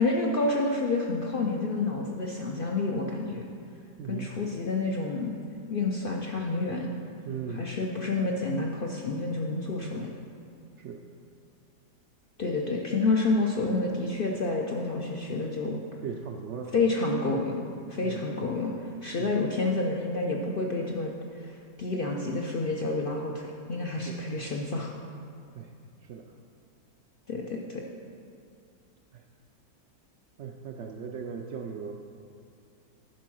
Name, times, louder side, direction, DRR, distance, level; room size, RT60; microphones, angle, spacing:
voice 1, 0.0-3.5 4.1-5.3 5.7-6.9 7.5-10.1 12.4-15.8 16.7-17.6 17.9-18.7 19.0-21.1 21.4-24.9 27.3-27.8, left 3 dB, 75° left, -1 dB, 0.5 m, -29 dB
voice 2, 4.0-4.3 7.3-7.7 10.8-11.0 16.0-16.7 17.4-17.5 18.0-18.2 19.2-19.3 24.0-24.2 25.6-25.7 26.0-26.3 29.1-29.2 30.4-31.9, right 7 dB, 80° right, 2 dB, 0.6 m, -38 dB
10.5 x 4.6 x 6.2 m, 2.4 s
omnidirectional pair, 1.8 m